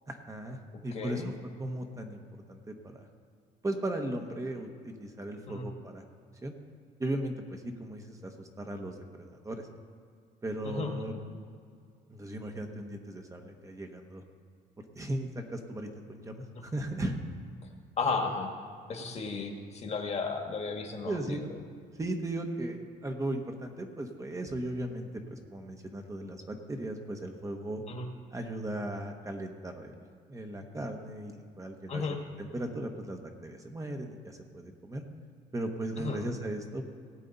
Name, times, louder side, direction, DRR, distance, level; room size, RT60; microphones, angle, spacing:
voice 1, 0.1-0.6 0.8-1.3 1.6-2.2 2.5-3.1 3.6-6.0 6.4-6.5 7.0-9.7 10.4-11.1 12.1-14.2 14.9-17.2 21.0-21.4 21.9-27.8 28.3-30.0 30.3-32.0 32.4-35.0 35.5-36.9, right 1 dB, 20° right, 4 dB, 1.2 m, -37 dB
voice 2, 0.9-1.3 5.5-5.7 10.6-11.2 16.6-16.7 18.0-18.5 18.9-21.5 27.9-28.1 31.9-32.2 36.0-36.2, left 4 dB, 40° left, 3 dB, 1.7 m, -34 dB
18.5 x 8.3 x 4.1 m, 2.2 s
cardioid pair, 110°, 17 cm